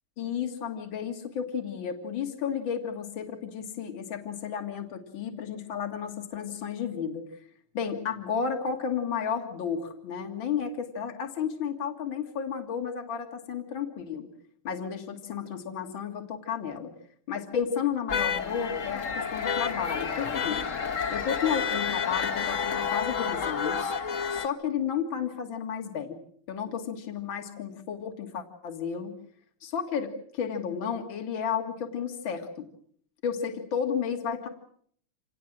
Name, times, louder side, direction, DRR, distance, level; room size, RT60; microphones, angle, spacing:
voice 1, 0.2-7.3 7.7-14.3 14.6-16.9 17.3-20.6 21.1-23.9 24.3-26.2 26.5-29.1 29.6-32.7 33.2-34.5, left 7 dB, 60° left, 5 dB, 2.8 m, -32 dB
sound 1, 18.1-24.5, left 6 dB, 40° left, 1.4 m, -30 dB
27.5 x 19.5 x 7.5 m, 0.63 s
omnidirectional pair, 2.4 m